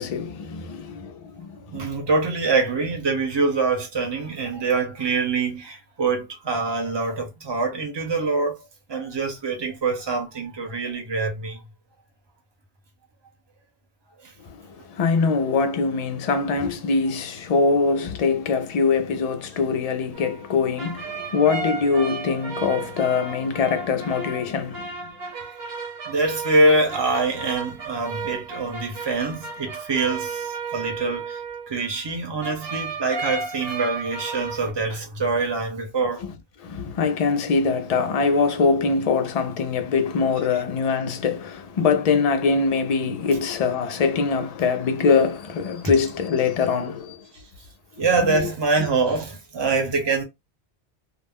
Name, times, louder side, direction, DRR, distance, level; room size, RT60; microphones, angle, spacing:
voice 1, 0.0-1.8 14.9-24.9 36.2-36.3 36.6-47.2 48.3-48.4, left 5 dB, 50° left, 0.4 m, -23 dB
voice 2, 1.7-8.5 8.9-11.6 26.1-31.4 31.7-36.2 48.0-50.2, right 3 dB, 25° right, 0.7 m, -24 dB
sound 1, 20.1-32.2 32.4-34.7, right 4 dB, 65° right, 1.2 m, -34 dB
2.4 x 2.0 x 3.5 m
omnidirectional pair, 1.1 m